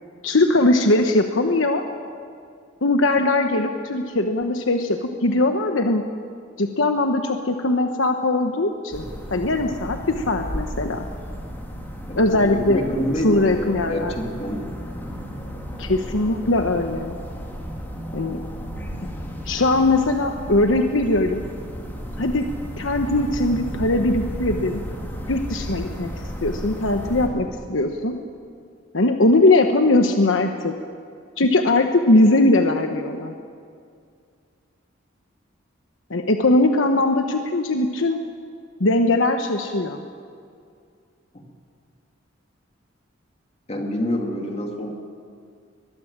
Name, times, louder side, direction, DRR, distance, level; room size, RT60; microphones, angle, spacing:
voice 1, 0.2-1.8 2.8-6.0 6.6-9.0 9.3-11.0 12.1-12.8 13.2-14.1 15.8-17.1 18.1-18.4 19.4-21.4 22.2-22.5 22.8-24.8 25.3-28.2 28.9-30.7 31.4-33.3 36.1-38.2 38.8-40.0, left 2 dB, 75° left, 5 dB, 1.2 m, -20 dB
Ext-amb subdued forest late-fall-evening, 8.9-27.3, equal, 10° left, 3.6 m, -34 dB
voice 2, 12.5-14.6 43.7-44.9, left 1 dB, 35° left, 2 dB, 2.6 m, -27 dB
22.0 x 21.5 x 7.4 m, 2.3 s
head